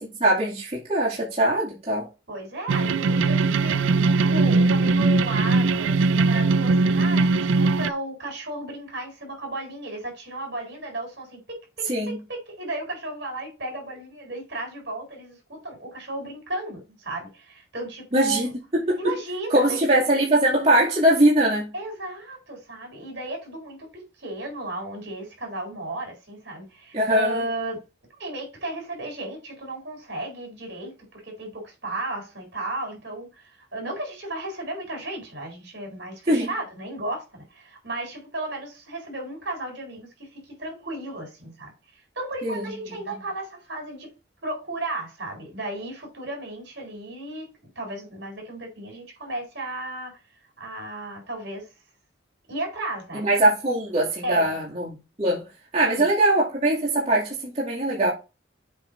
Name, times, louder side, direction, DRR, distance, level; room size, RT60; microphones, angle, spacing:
voice 1, 0.2-2.1 11.9-12.2 18.1-19.1 19.5-21.7 26.9-27.4 36.3-36.5 42.4-42.7 53.1-55.4 55.7-58.1, right 1 dB, 35° right, 2.4 m, -22 dB
voice 2, 2.3-18.5 19.0-19.8 21.7-27.8 28.2-44.1 44.4-50.2 50.6-51.7 52.5-53.3 54.2-54.6 55.8-56.1, right 2 dB, 65° right, 4.3 m, -34 dB
sound 1, 2.7-7.9, right 3 dB, 85° right, 0.4 m, -20 dB
7.7 x 3.8 x 5.2 m
head